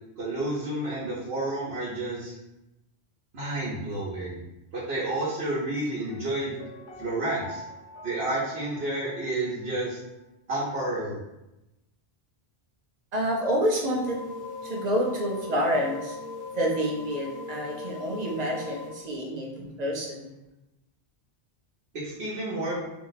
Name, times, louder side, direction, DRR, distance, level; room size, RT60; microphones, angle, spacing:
voice 1, 0.2-2.3 3.3-4.4 4.7-6.6 7.0-7.6 8.0-10.0 10.5-11.2 21.9-22.8, right 1 dB, 70° right, -7 dB, 1.0 m, -30 dB
Piano, 6.1-9.9 10.1-10.2, left 1 dB, 60° left, 0.8 m, -46 dB
voice 2, 13.1-14.2 14.6-16.2 16.5-20.3, equal, 45° right, -2 dB, 0.7 m, -28 dB
sound 1, 13.8-18.9, left 4 dB, 15° right, 0.5 m, -39 dB
2.7 x 2.0 x 3.9 m, 0.93 s
omnidirectional pair, 1.1 m